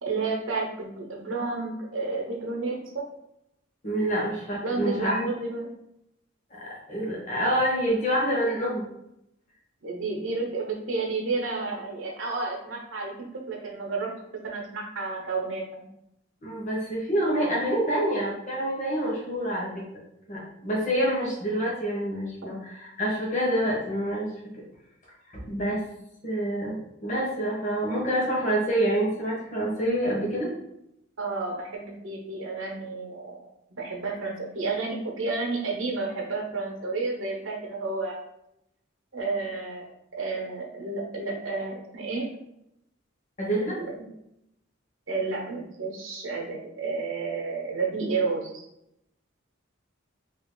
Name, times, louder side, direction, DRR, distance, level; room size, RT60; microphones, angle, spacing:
voice 1, 0.0-3.1 4.6-5.7 9.8-14.1 14.4-15.9 31.2-38.2 39.1-39.9 40.2-42.3 43.8-43.9 45.1-48.7, right 3 dB, 70° right, -1 dB, 0.7 m, -31 dB
voice 2, 3.8-5.2 6.5-8.9 16.4-19.8 20.3-24.3 25.3-25.8 26.2-30.5 43.4-43.8, right 1 dB, 40° left, -4 dB, 1.1 m, -27 dB
2.9 x 2.8 x 3.7 m, 0.82 s
head